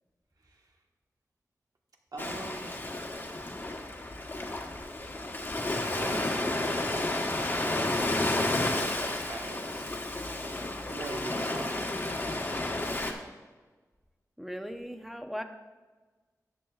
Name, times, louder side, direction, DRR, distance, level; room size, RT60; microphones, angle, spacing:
voice 1, 0.4-0.7 2.1-2.8 5.9-10.0 10.7-12.2, right 2 dB, 85° right, 1 dB, 1.3 m, -43 dB
Ocean, 2.2-13.1, left 2 dB, 35° left, 1.2 m, -31 dB
voice 2, 14.4-15.4, equal, 5° right, 6 dB, 0.7 m, -38 dB
13.5 x 9.0 x 2.4 m, 1.3 s
wide cardioid pair, 100°, 6 cm